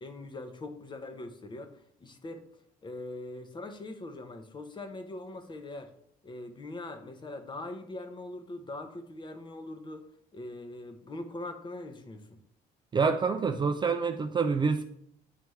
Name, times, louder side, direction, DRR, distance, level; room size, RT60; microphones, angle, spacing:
voice 1, 0.0-1.7 2.0-2.4 2.8-5.9 6.2-10.0 10.3-12.4, left 2 dB, 25° left, 0.8 m, -42 dB
voice 2, 12.9-14.8, right 5 dB, 25° right, 0.4 m, -27 dB
9.1 x 3.4 x 3.2 m
cardioid pair, 110°, 17 cm